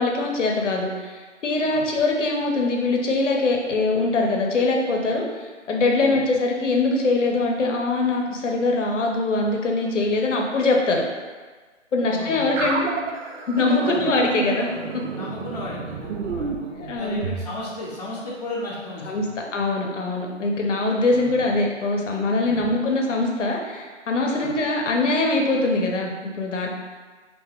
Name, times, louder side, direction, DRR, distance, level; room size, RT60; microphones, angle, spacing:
voice 1, 0.0-11.0 11.9-12.9 13.5-14.7 16.7-17.3 19.1-19.2 19.5-26.7, left 2 dB, 75° left, 1 dB, 0.7 m, -23 dB
voice 2, 12.0-12.7 13.8-14.1 15.1-16.7 17.0-19.4 21.0-21.4 22.5-22.6 24.3-24.5, left 2 dB, 35° left, -7 dB, 0.8 m, -35 dB
sound 1, 12.6-17.5, right 5 dB, 80° right, 0.5 m, -30 dB
2.7 x 2.1 x 3.4 m, 1.4 s
hypercardioid pair, 160°, 37 cm